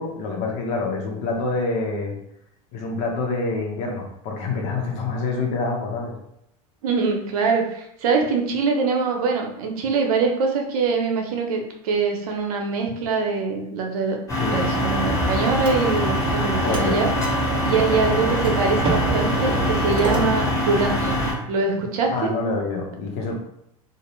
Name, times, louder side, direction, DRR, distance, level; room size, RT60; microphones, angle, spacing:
voice 1, 0.0-2.2 2.7-6.2 14.4-14.6 16.6-17.0 22.1-23.3, left 3 dB, 55° left, 1 dB, 0.8 m, -26 dB
voice 2, 6.8-14.2 14.5-17.1 17.6-21.2 21.5-22.3, right 4 dB, 80° right, 2 dB, 0.6 m, -23 dB
sound 1, 14.3-21.3, left 1 dB, 20° left, 1.3 m, -23 dB
sound 2, 14.6-20.2, right 4 dB, 25° right, 0.5 m, -29 dB
2.4 x 2.1 x 3.0 m, 0.78 s
supercardioid pair, 110°, 19 cm